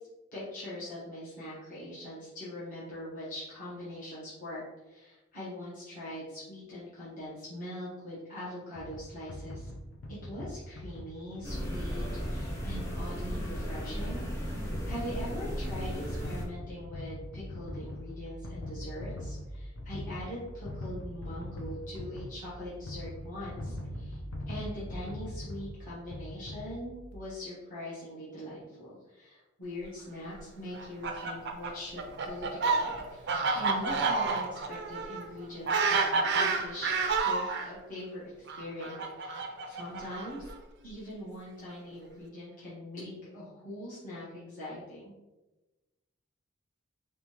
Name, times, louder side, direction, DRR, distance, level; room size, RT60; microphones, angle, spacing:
voice 1, 0.3-9.7 10.1-24.2 24.5-40.5 40.8-45.1, left 1 dB, 40° left, -11 dB, 1.4 m, -42 dB
sound 1, 8.7-27.1, left 1 dB, 75° left, 0.7 m, -42 dB
sound 2, 11.4-16.4, equal, 15° left, 0.9 m, -35 dB
Fowl, 30.7-37.7 38.5-40.5, right 4 dB, 55° right, 0.5 m, -29 dB
5.2 x 2.5 x 3.0 m, 1.1 s
head